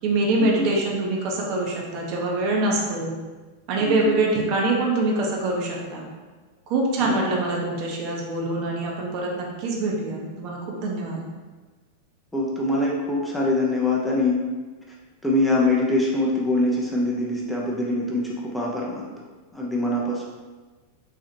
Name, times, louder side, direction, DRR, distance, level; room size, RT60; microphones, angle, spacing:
voice 1, 0.0-3.1 3.7-6.1 6.7-11.3, right 2 dB, 40° right, -2 dB, 0.7 m, -24 dB
voice 2, 3.8-4.1 7.0-7.2 12.3-14.4 15.2-19.1 19.5-20.3, left 2 dB, 5° left, -4 dB, 0.6 m, -23 dB
4.1 x 2.4 x 2.8 m, 1.3 s
figure-of-eight pair, 90°, 0 cm